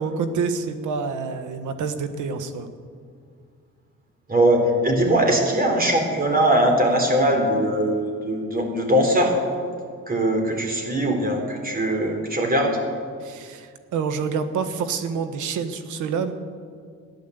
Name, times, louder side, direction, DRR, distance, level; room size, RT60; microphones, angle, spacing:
voice 1, 0.0-2.7 13.2-16.3, right 5 dB, 80° right, 9 dB, 1.4 m, -27 dB
voice 2, 4.3-9.4 10.1-12.7, right 1 dB, 30° right, 2 dB, 4.0 m, -21 dB
14.5 x 10.5 x 8.1 m, 2.1 s
cardioid pair, 90°, 30 cm